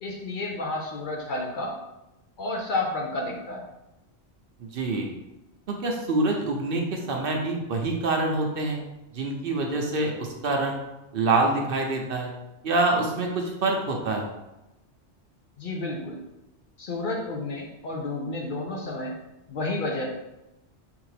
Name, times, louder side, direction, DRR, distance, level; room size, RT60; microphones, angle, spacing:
voice 1, 0.0-1.7 2.4-3.6 15.6-16.2 16.8-19.2 19.5-20.0, left 2 dB, 55° left, 0 dB, 0.6 m, -31 dB
voice 2, 4.7-5.1 5.7-8.8 9.1-10.8 11.1-12.3 12.6-14.3, right 2 dB, 60° right, 1 dB, 0.7 m, -26 dB
3.5 x 3.3 x 3.2 m, 0.96 s
omnidirectional pair, 1.2 m